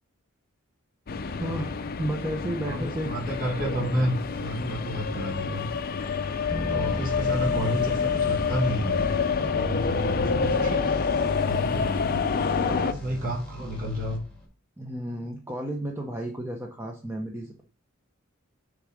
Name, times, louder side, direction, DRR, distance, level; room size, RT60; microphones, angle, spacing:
sound 1, 1.1-12.9, left 5 dB, 45° left, 0.5 m, -27 dB
voice 1, 1.4-3.1 7.2-7.7 9.9-10.6 12.1-12.2 12.6-12.9 14.8-17.6, right 1 dB, 10° right, 1 dB, 0.7 m, -33 dB
voice 2, 2.7-5.7 6.5-11.0 11.3-14.2, equal, 40° right, -1 dB, 1.8 m, -31 dB
sound 2, 6.5-14.4, left 1 dB, 5° left, 1.8 m, -36 dB
6.6 x 3.8 x 6.1 m, 0.41 s
head